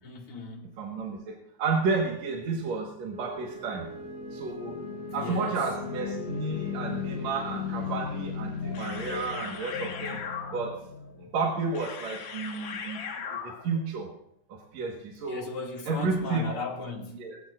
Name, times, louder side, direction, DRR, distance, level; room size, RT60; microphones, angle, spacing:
voice 1, 0.0-0.7 5.1-5.5 15.3-17.2, left 3 dB, 50° left, 3.3 m, -37 dB
voice 2, 0.8-3.9 4.3-4.8 5.1-10.2 10.5-10.9 11.2-13.0 13.3-14.1 14.5-15.5 15.9-16.5 17.1-17.4, right 4 dB, 70° right, 2.8 m, -31 dB
sound 1, 2.5-11.8, left 7 dB, 65° left, 1.9 m, -38 dB
Wind instrument woodwind instrument, 3.1-7.7, right 1 dB, ahead, 2.5 m, -43 dB
sound 2, 8.6-13.9, left 6 dB, 80° left, 2.6 m, -39 dB
21.0 x 14.5 x 2.6 m
omnidirectional pair, 3.3 m